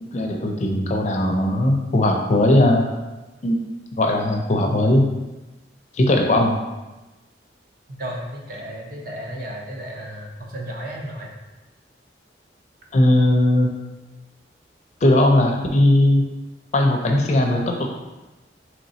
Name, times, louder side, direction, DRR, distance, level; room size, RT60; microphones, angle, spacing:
voice 1, 0.0-2.9 3.4-3.6 4.0-5.1 5.9-6.6 12.9-13.7 15.0-16.2 16.7-17.9, left 1 dB, 40° left, 2 dB, 0.4 m, -18 dB
voice 2, 8.0-11.4, equal, 55° right, -1 dB, 0.7 m, -33 dB
4.0 x 3.1 x 2.7 m, 1.1 s
head